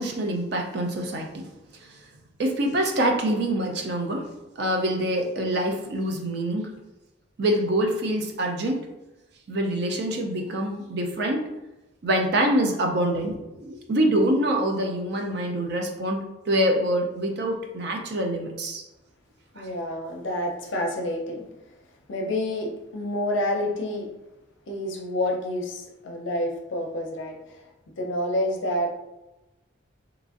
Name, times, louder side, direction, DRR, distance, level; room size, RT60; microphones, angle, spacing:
voice 1, 0.0-2.0 2.4-4.3 4.6-6.7 7.4-8.8 9.5-11.5 12.0-18.8 19.6-19.7, right 1 dB, 55° right, 2 dB, 0.4 m, -25 dB
voice 2, 19.5-21.4 22.1-24.1 24.7-27.6 28.0-29.0, left 1 dB, 65° left, 1 dB, 0.5 m, -28 dB
2.9 x 2.5 x 2.4 m, 0.99 s
head